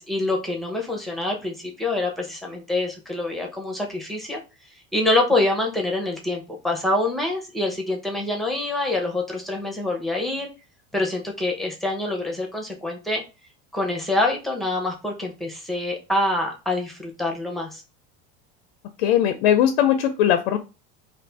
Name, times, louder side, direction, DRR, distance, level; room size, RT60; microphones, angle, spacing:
voice 1, 0.0-4.4 4.9-10.5 10.9-13.2 13.7-17.8, left 2 dB, ahead, 1 dB, 0.7 m, -26 dB
voice 2, 19.0-20.6, left 10 dB, 90° left, 8 dB, 0.5 m, -19 dB
2.6 x 2.6 x 3.3 m, 0.30 s
supercardioid pair, 130°, 30 cm